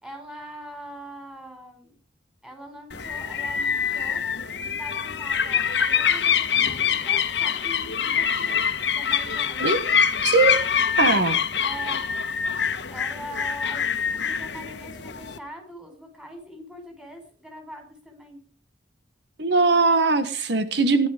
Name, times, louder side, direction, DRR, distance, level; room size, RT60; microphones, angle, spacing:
voice 1, 0.0-2.0 2.4-4.2 4.6-8.6 8.9-10.0 11.6-12.0 12.9-18.4, equal, 5° right, 3 dB, 5.0 m, -42 dB
sound 1, 2.9-15.4, left 7 dB, 70° left, 1.2 m, -25 dB
voice 2, 10.2-10.7 11.0-11.4 19.4-21.1, right 3 dB, 70° right, 10 dB, 1.5 m, -20 dB
17.0 x 11.5 x 5.1 m, 0.43 s
head